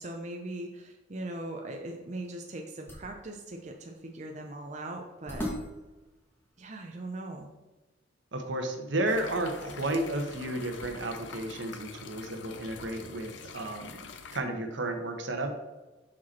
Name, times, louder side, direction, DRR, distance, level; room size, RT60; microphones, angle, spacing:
voice 1, 0.0-5.5 6.6-7.5, right 2 dB, 40° right, 2 dB, 0.6 m, -40 dB
sound 1, 1.7-7.1, equal, 10° left, 1.3 m, -43 dB
voice 2, 8.3-14.0 14.3-15.6, right 1 dB, 70° right, 4 dB, 1.0 m, -32 dB
sound 2, 9.1-14.4, left 5 dB, 75° left, 0.6 m, -46 dB
6.0 x 5.1 x 4.2 m, 1.1 s
head